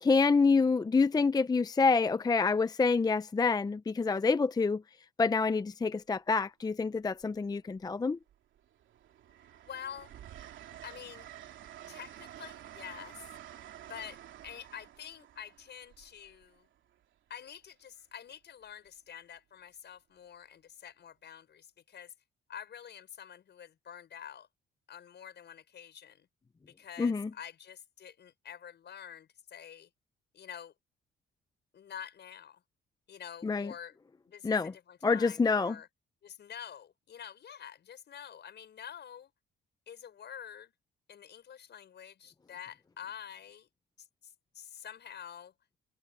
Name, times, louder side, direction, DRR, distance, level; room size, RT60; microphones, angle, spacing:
voice 1, 0.0-4.8 5.2-8.2 27.0-27.3 33.4-33.7 34.4-34.7 35.0-35.8, left 4 dB, 20° left, 0.5 m, -27 dB
Train, 5.5-5.8 7.1-7.9 8.3-17.0 18.6-18.9, right 11 dB, 75° right, 2.8 m, -51 dB
voice 2, 9.6-10.1 10.8-11.3 11.9-13.2 13.9-16.7 17.3-22.1 22.5-24.5 24.9-26.3 26.7-29.9 30.3-30.7 31.7-32.6 33.1-34.0 34.3-35.9 36.2-39.3 39.9-40.7 41.1-43.7 44.0-45.5, left 8 dB, 60° left, 6.3 m, -47 dB
cardioid pair, 90°, 20 cm